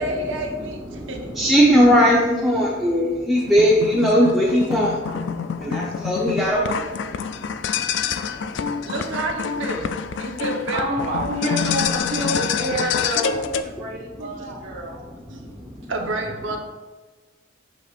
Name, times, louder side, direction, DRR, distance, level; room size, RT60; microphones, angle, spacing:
voice 1, 0.0-1.2 3.8-3.9 8.8-10.9 14.2-14.6 15.3-15.5 15.9-16.6, right 2 dB, 65° right, 2 dB, 0.9 m, -29 dB
voice 2, 0.9-5.0 5.6-6.8, equal, ahead, -5 dB, 0.7 m, -18 dB
sound 1, 3.4-13.6, left 6 dB, 60° left, 0.3 m, -27 dB
voice 3, 8.1-8.8 10.4-15.0 16.5-16.6, right 1 dB, 90° right, -6 dB, 1.2 m, -29 dB
8.2 x 6.0 x 2.5 m, 1.3 s
head